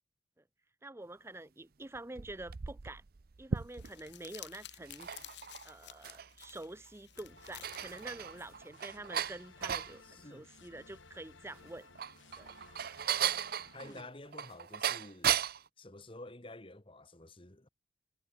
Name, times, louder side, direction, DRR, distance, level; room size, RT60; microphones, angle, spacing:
voice 1, 0.8-3.0 3.4-5.1 5.6-11.9 12.4-12.5 13.8-14.0, right 2 dB, 15° right, 0.6 m, -47 dB
sound 1, 1.9-4.1 4.8-6.5 6.9-7.0 7.4-9.9 11.7-15.7, right 9 dB, 50° right, 0.6 m, -36 dB
Crumpling crinkling, 3.6-8.6, left 12 dB, 65° left, 3.7 m, -53 dB
sound 2, 7.1-14.0, left 4 dB, 90° left, 2.4 m, -58 dB
voice 2, 10.0-10.5 13.7-15.4 15.8-17.7, left 2 dB, 30° left, 1.9 m, -50 dB
head